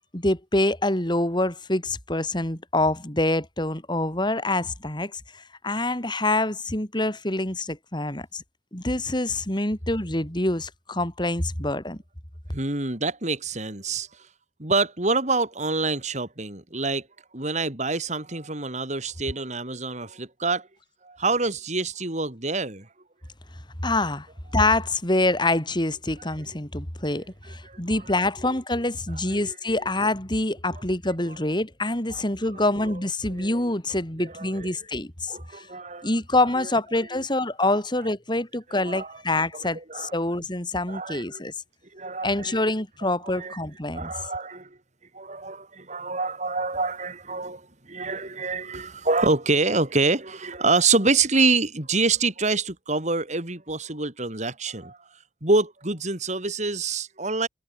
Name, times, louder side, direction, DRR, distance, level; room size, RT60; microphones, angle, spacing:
voice 1, 0.1-8.4 8.7-12.0 23.8-24.3 24.5-35.7 36.0-41.5 42.2-44.1, left 2 dB, 25° left, 4.8 m, -26 dB
voice 2, 12.5-14.1 14.6-17.1 17.3-20.7 21.0-22.9 27.5-27.8 29.3-29.8 32.1-32.2 32.5-32.6 33.3-33.5 34.3-34.7 35.3-36.1 36.6-36.7 37.1-37.2 37.6-37.8 38.7-39.1 39.6-40.1 40.9-41.4 41.9-42.7 43.0-43.6 43.9-44.7 45.1-55.0 55.4-57.5, right 3 dB, 45° right, 3.8 m, -26 dB
head